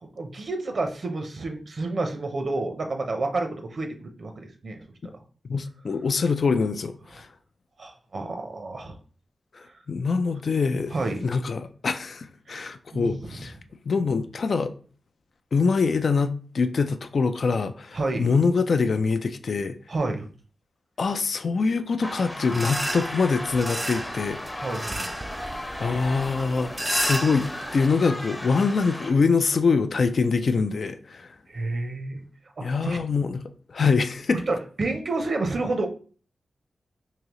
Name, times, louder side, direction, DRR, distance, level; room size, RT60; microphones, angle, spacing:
voice 1, 0.0-4.8 5.1-5.2 7.8-9.0 10.9-11.3 12.5-13.2 17.9-18.3 19.9-20.3 24.6-25.1 31.5-32.2 32.6-33.0 34.5-35.9, right 2 dB, 60° right, 0.6 m, -30 dB
voice 2, 5.5-7.3 9.5-10.9 11.2-13.5 13.8-14.7 15.5-19.8 21.0-24.4 25.8-31.3 32.6-33.4 33.7-34.4, left 4 dB, 65° left, 0.3 m, -24 dB
sound 1, 22.0-29.1, left 1 dB, 20° left, 0.7 m, -36 dB
sound 2, 22.5-27.9, right 1 dB, 15° right, 0.3 m, -33 dB
3.7 x 2.7 x 3.0 m
cardioid pair, 70°, 0 cm